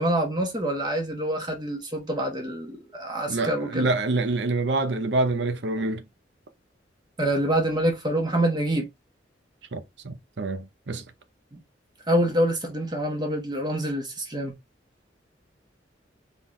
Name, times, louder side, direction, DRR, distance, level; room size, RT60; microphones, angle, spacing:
voice 1, 0.0-3.9 7.2-8.9 11.5-11.6 12.1-14.5, right 1 dB, 25° right, 1.3 m, -26 dB
voice 2, 3.3-6.0 9.7-11.0, right 2 dB, 75° right, 0.8 m, -26 dB
4.1 x 3.9 x 3.0 m
head